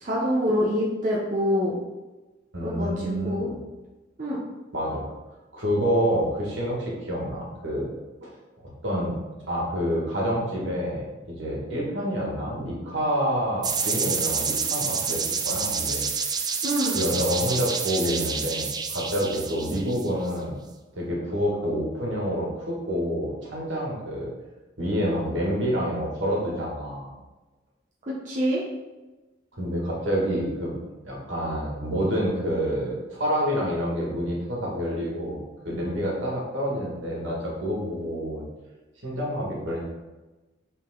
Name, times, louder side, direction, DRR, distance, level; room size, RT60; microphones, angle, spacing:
voice 1, 0.0-1.8 2.6-3.5 4.2-4.4 16.6-17.0 28.3-28.6, equal, 40° right, -5 dB, 1.0 m, -25 dB
voice 2, 2.5-3.6 4.7-5.0 5.5-7.9 8.2-8.3 8.8-9.2 9.5-16.1 16.9-20.6 20.9-24.3 24.8-27.1 29.5-30.7 31.0-38.4 39.0-39.8, equal, 80° right, -3 dB, 2.0 m, -28 dB
sound 1, 13.6-20.3, right 5 dB, 20° right, 0.4 m, -28 dB
6.1 x 4.0 x 3.9 m, 1.1 s
head